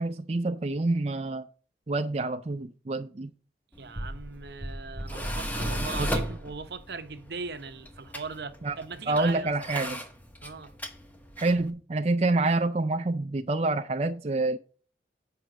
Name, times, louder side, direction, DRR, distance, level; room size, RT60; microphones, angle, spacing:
voice 1, 0.0-1.5 1.9-3.3 6.0-6.1 8.6-8.8 9.1-10.0 11.4-14.6, right 2 dB, 35° right, 0.4 m, -27 dB
Tools, 3.7-11.7, equal, 10° left, 1.0 m, -36 dB
voice 2, 3.8-9.5 10.4-10.7, right 4 dB, 65° right, 0.8 m, -39 dB
7.8 x 5.7 x 6.0 m
head